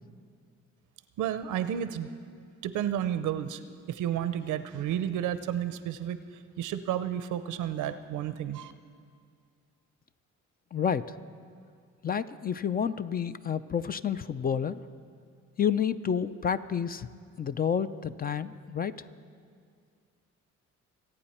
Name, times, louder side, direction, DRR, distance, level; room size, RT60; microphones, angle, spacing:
voice 1, 1.2-2.1 2.6-3.6 3.9-6.2 6.6-8.7, right 10 dB, 85° right, 12 dB, 0.7 m, -31 dB
voice 2, 10.7-11.0 12.0-14.8 15.6-17.1 17.4-19.0, left 7 dB, 30° left, 13 dB, 0.4 m, -29 dB
26.0 x 8.9 x 4.3 m, 2.2 s
cardioid pair, 90°, 30 cm